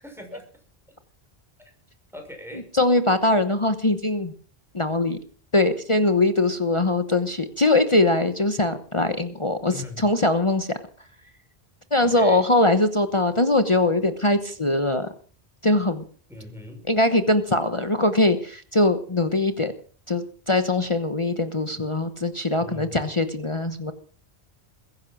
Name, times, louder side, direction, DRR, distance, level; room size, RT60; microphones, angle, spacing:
voice 1, 0.0-0.5 2.1-2.7 9.7-10.0 12.0-12.5 16.3-16.8 22.6-23.1, left 2 dB, ahead, 3 dB, 6.0 m, -40 dB
voice 2, 2.7-4.3 4.7-5.2 5.5-10.7 11.9-15.1 15.6-16.0 16.9-19.7 20.1-23.9, left 2 dB, 30° left, 9 dB, 1.2 m, -22 dB
21.5 x 10.5 x 6.2 m, 0.43 s
omnidirectional pair, 1.1 m